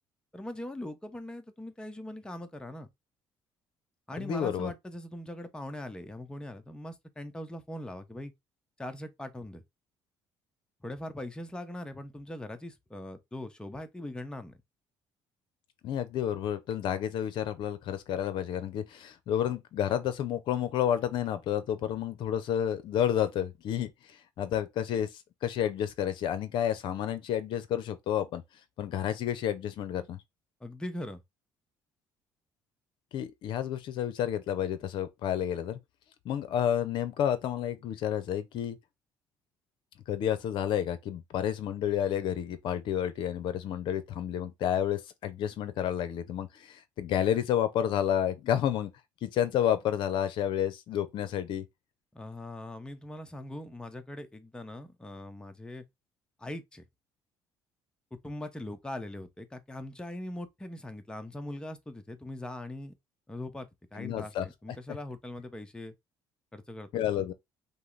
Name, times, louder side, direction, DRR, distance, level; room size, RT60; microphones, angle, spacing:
voice 1, 0.3-2.9 4.1-8.3 8.8-9.6 10.8-14.6 30.6-31.2 52.1-55.8 56.4-56.8 58.1-62.9 63.3-65.9 66.5-67.0, left 1 dB, 10° left, 0.8 m, -41 dB
voice 2, 4.2-4.7 15.8-28.4 28.8-30.2 33.1-35.8 36.2-38.8 40.1-48.9 49.2-51.6 64.0-64.5 66.9-67.3, left 10 dB, 70° left, 0.6 m, -30 dB
5.4 x 2.1 x 3.9 m
cardioid pair, 90°, 9 cm